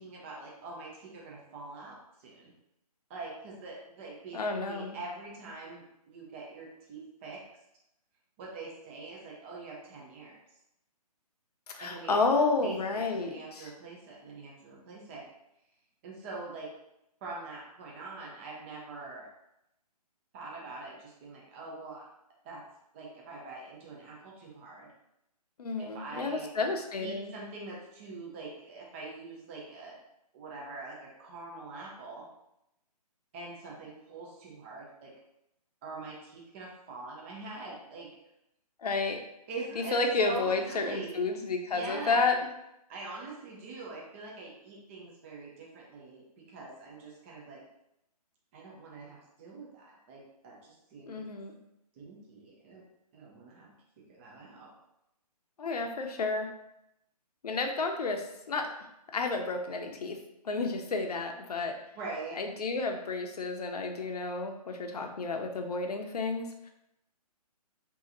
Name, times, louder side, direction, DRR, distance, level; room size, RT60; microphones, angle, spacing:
voice 1, 0.0-2.5 3.1-7.4 8.4-10.4 11.8-15.2 16.0-16.7 17.2-19.3 20.3-22.0 22.4-22.6 22.9-24.9 25.8-26.5 27.0-30.0 30.3-32.3 33.3-35.1 35.8-38.1 39.5-40.0 40.2-41.2 41.7-42.3 42.9-47.6 48.5-51.2 51.9-52.9 53.1-54.8 62.0-62.4, right 3 dB, 20° right, -3 dB, 0.5 m, -44 dB
voice 2, 4.3-5.0 11.7-13.7 25.6-27.3 38.8-39.2 39.8-42.4 51.1-51.6 55.6-56.5 57.4-58.7 59.1-60.2 60.4-61.8 62.4-66.7, left 3 dB, 70° left, 4 dB, 0.7 m, -31 dB
3.7 x 2.8 x 2.7 m, 0.84 s
hypercardioid pair, 150°, 20 cm